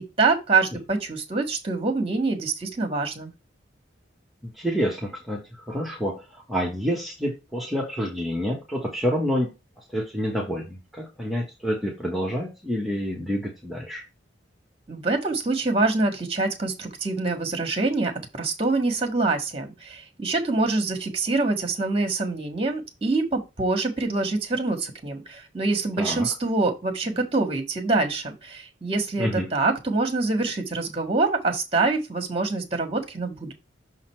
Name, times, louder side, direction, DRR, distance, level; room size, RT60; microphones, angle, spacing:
voice 1, 0.2-3.3 14.9-33.5, right 3 dB, 30° right, 4 dB, 1.6 m, -25 dB
voice 2, 4.6-14.0 26.0-26.3 29.2-29.5, equal, ahead, -2 dB, 1.3 m, -28 dB
6.3 x 4.0 x 4.5 m, 0.24 s
head